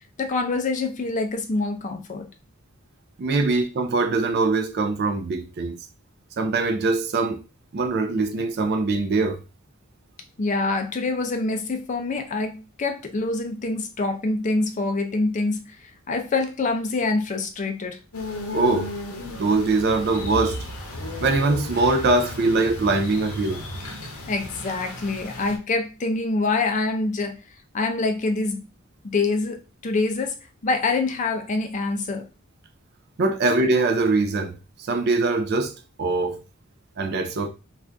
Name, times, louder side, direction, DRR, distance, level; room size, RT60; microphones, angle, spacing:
voice 1, 0.2-2.3 10.4-18.0 24.3-27.4 27.7-28.7 29.0-30.4 30.6-32.3, left 3 dB, 35° left, 0.4 m, -25 dB
voice 2, 3.2-5.8 6.4-7.4 7.7-9.4 18.5-18.9 19.3-20.6 21.2-23.6 33.2-36.4 37.0-37.5, right 3 dB, 50° right, 0.4 m, -22 dB
sound 1, 18.1-25.6, left 3 dB, 85° left, 0.7 m, -36 dB
sound 2, 19.6-24.6, equal, 80° right, 1.0 m, -37 dB
2.5 x 2.4 x 3.3 m
head